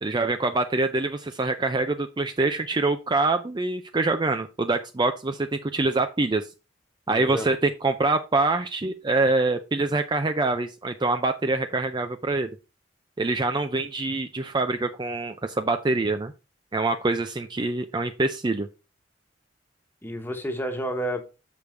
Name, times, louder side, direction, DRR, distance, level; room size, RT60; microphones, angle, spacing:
voice 1, 0.0-6.5 7.1-12.5 13.2-16.3 16.7-18.7, right 3 dB, 25° right, 8 dB, 0.5 m, -25 dB
voice 2, 7.1-7.5 20.0-21.3, equal, 10° left, 5 dB, 1.2 m, -30 dB
6.8 x 5.2 x 4.5 m, 0.29 s
head